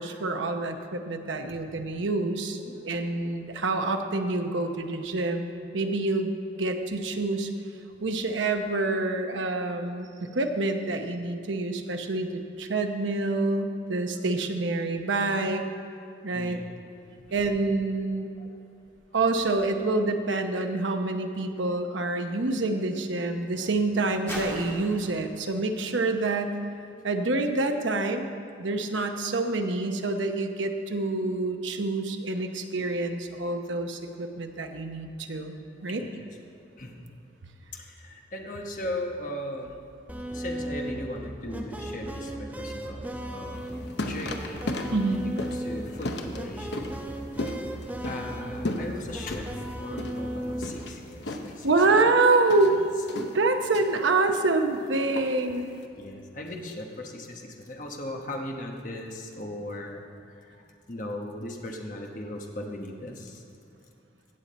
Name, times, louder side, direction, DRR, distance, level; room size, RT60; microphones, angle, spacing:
voice 1, 0.0-2.6 2.8-5.5 5.7-6.3 6.6-7.5 8.0-15.6 16.2-16.6 17.3-18.3 19.1-26.5 27.0-28.3 28.6-36.0 44.9-45.2 51.6-52.8 53.1-55.7, right 2 dB, 85° right, 5 dB, 0.8 m, -27 dB
sound 1, 22.5-27.3 28.1-28.2, equal, 15° left, 1.8 m, -45 dB
voice 2, 35.8-36.2 36.7-37.0 37.7-39.8 40.3-46.9 48.0-49.5 49.8-51.7 55.9-60.6 60.9-63.4, left 1 dB, 45° left, 1 dB, 1.1 m, -38 dB
sound 2, 40.1-50.8, right 1 dB, 10° right, 0.5 m, -36 dB
sound 3, 43.5-55.8, left 2 dB, 70° left, 0.8 m, -37 dB
16.0 x 7.4 x 4.2 m, 2.6 s
head